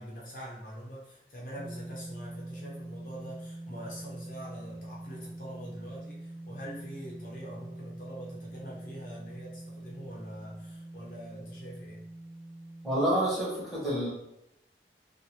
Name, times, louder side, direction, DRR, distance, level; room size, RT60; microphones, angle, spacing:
voice 1, 0.0-12.0, equal, 50° left, -4 dB, 0.7 m, -44 dB
sound 1, 1.6-13.1, right 1 dB, 35° right, 0.3 m, -44 dB
voice 2, 12.8-14.1, right 1 dB, ahead, -8 dB, 1.0 m, -28 dB
2.7 x 2.5 x 2.8 m, 0.84 s
head